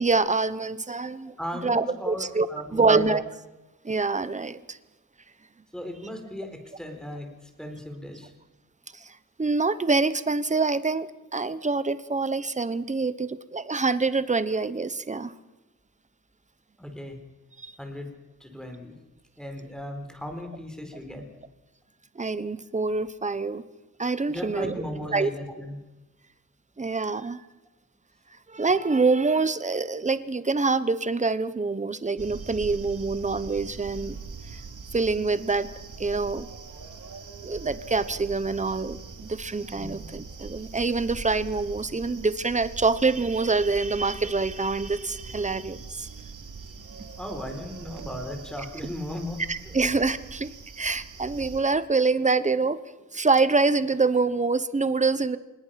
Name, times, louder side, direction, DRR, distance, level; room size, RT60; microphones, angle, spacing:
voice 1, 0.0-3.2 3.8-4.8 8.9-15.3 17.6-17.7 22.1-23.6 24.0-24.7 25.1-25.3 26.8-27.4 28.5-34.2 34.5-34.6 34.9-35.7 36.0-36.5 37.4-46.1 47.0-47.1 49.5-50.5 50.8-52.8 53.1-55.4, right 3 dB, 20° right, 14 dB, 1.1 m, -25 dB
voice 2, 1.2-3.2 5.7-8.3 16.8-17.2 17.8-18.1 18.4-18.9 19.4-21.3 24.3-25.8 39.8-39.9 47.2-49.4, left 1 dB, ahead, 4 dB, 4.4 m, -36 dB
sound 1, 32.2-51.6, right 4 dB, 70° right, 3.1 m, -42 dB
26.0 x 21.0 x 6.0 m, 1.0 s
wide cardioid pair, 140°, 32 cm